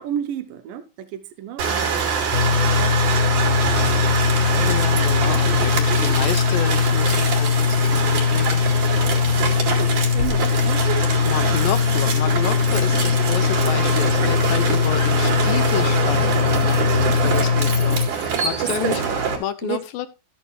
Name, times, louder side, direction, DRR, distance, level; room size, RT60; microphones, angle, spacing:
voice 1, 0.0-2.6 3.7-3.9 4.5-4.8 5.2-6.2 7.1-7.2 9.5-11.3 16.8-17.6 18.6-19.0 19.6-19.8, right 9 dB, 75° right, 2.5 m, -32 dB
sound 1, 1.6-19.4, right 6 dB, 55° right, 3.7 m, -24 dB
sound 2, 2.3-18.1, left 7 dB, 60° left, 1.7 m, -20 dB
voice 2, 4.7-8.6 11.3-19.0 19.4-20.1, left 11 dB, 80° left, 2.2 m, -30 dB
13.0 x 8.8 x 3.2 m
omnidirectional pair, 4.3 m